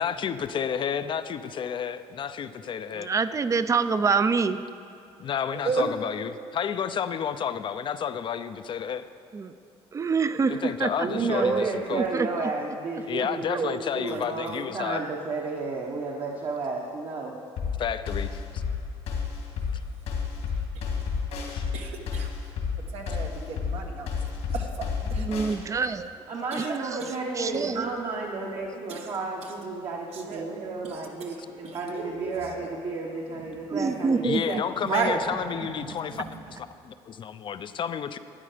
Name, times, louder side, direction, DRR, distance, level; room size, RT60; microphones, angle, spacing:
voice 1, 0.0-3.1 5.2-9.0 10.5-12.0 13.1-15.0 17.8-18.6 21.5-21.6 34.2-36.2 36.5-38.2, left 8 dB, 50° left, 12 dB, 0.6 m, -31 dB
voice 2, 3.0-4.6 9.3-9.5 9.9-11.1 11.4-12.3 13.5-13.7 25.2-26.1 26.6-26.7 27.4-27.8 33.7-34.4, right 5 dB, 30° right, 12 dB, 0.5 m, -26 dB
voice 3, 5.5-5.9 21.7-22.3 22.9-24.1 24.5-25.2 26.6-26.7 30.3-30.5 31.9-32.2 32.6-32.7 34.8-35.2 35.9-36.4, right 5 dB, 75° right, 1 dB, 1.3 m, -31 dB
voice 4, 11.0-17.4 26.3-34.6, right 3 dB, 55° right, -1 dB, 1.2 m, -32 dB
sound 1, 17.6-25.6, left 6 dB, 80° left, 2.2 m, -30 dB
12.5 x 9.0 x 5.0 m, 2.6 s
cardioid pair, 95°, 11 cm